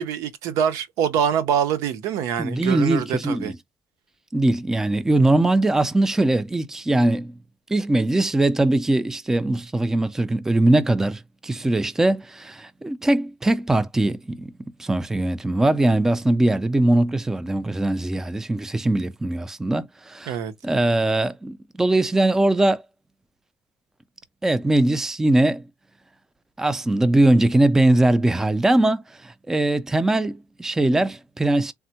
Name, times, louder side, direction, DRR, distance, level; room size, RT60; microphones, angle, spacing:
voice 1, 0.0-3.5 20.3-20.5, right 8 dB, 85° right, 0.6 m, -24 dB
voice 2, 2.4-3.6 4.3-7.3 7.7-14.5 14.8-20.4 20.6-22.8 24.4-25.6 26.6-31.7, right 2 dB, 10° right, 0.3 m, -21 dB
3.4 x 2.0 x 2.8 m
cardioid pair, 130°, 5 cm